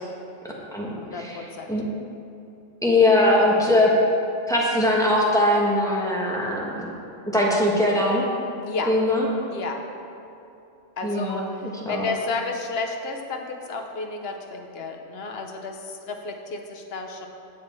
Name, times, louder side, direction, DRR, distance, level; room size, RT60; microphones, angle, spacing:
voice 1, 1.0-1.8 8.6-9.0 9.5-9.9 11.0-17.3, left 3 dB, 55° left, 3 dB, 1.0 m, -32 dB
voice 2, 2.8-3.9 4.5-6.9 7.3-8.2 8.9-9.2 11.0-12.1, left 1 dB, 5° left, -4 dB, 1.2 m, -21 dB
8.7 x 7.8 x 4.4 m, 2.7 s
omnidirectional pair, 1.3 m